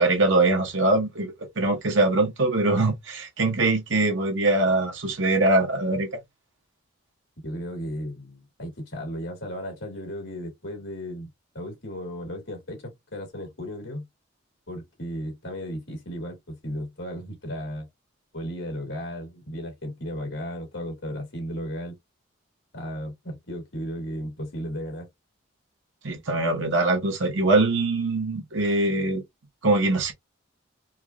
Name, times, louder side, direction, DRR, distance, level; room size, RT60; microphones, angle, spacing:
voice 1, 0.0-6.2 26.0-29.2 29.6-30.1, right 2 dB, 70° right, 1.1 m, -22 dB
voice 2, 7.4-11.3 11.5-14.0 14.7-17.9 18.3-22.0 22.7-25.1, equal, 70° left, 2.3 m, -35 dB
4.6 x 2.4 x 2.3 m
head